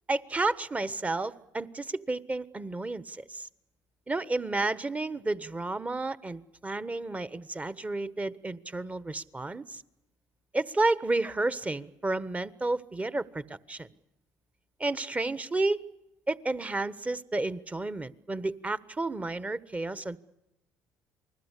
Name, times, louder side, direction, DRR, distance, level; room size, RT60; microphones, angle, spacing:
voice 1, 0.1-3.5 4.1-9.8 10.5-13.9 14.8-15.8 16.3-20.2, right 2 dB, 20° right, 16 dB, 1.3 m, -31 dB
28.0 x 20.5 x 8.4 m, 0.91 s
hypercardioid pair, 65°, 7 cm